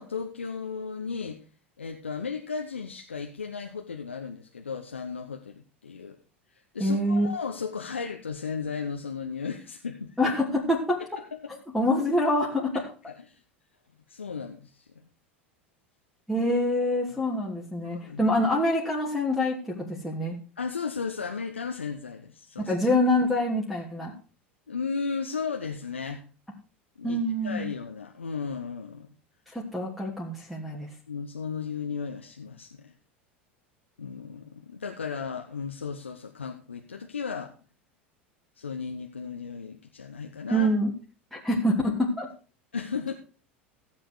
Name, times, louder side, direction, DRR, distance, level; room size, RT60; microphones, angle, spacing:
voice 1, 0.0-1.4 1.8-6.2 6.5-10.2 11.2-11.5 12.7-12.8 13.3-13.4 14.1-14.9 17.8-18.3 20.6-22.7 24.7-26.2 27.0-29.1 31.1-32.9 34.0-37.5 38.6-40.7 42.7-43.1, left 5 dB, 85° left, 4 dB, 1.0 m, -35 dB
voice 2, 6.8-7.3 10.2-11.0 11.7-12.7 16.3-20.4 22.7-24.1 27.0-27.6 29.5-30.9 40.5-40.9 41.3-42.3, left 1 dB, ahead, -5 dB, 3.0 m, -25 dB
15.0 x 7.7 x 4.7 m, 0.36 s
figure-of-eight pair, 80°, 6 cm